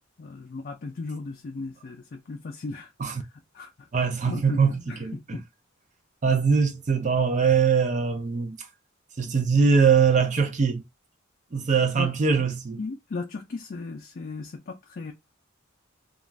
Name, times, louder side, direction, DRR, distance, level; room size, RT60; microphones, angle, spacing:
voice 1, 0.0-2.9 3.5-5.4 12.0-12.1 12.4-12.5 12.8-15.1, left 3 dB, 45° left, 0.4 m, -36 dB
voice 2, 3.9-5.4 6.2-8.6 9.2-10.8 11.5-12.8, right 5 dB, 35° right, 0.5 m, -22 dB
2.4 x 2.3 x 3.1 m
head